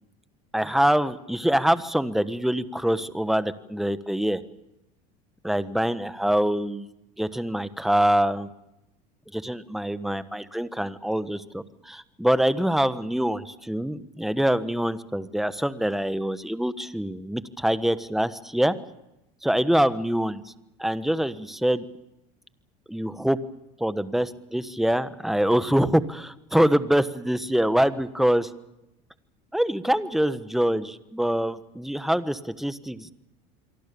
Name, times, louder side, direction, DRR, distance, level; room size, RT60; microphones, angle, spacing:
voice 1, 0.5-4.4 5.4-6.9 7.2-8.5 9.3-18.8 19.4-20.4 20.8-21.8 22.9-23.4 23.8-28.5 29.5-33.1, equal, ahead, 12 dB, 1.3 m, -24 dB
27.0 x 23.5 x 7.0 m, 0.91 s
supercardioid pair, 110°, 19 cm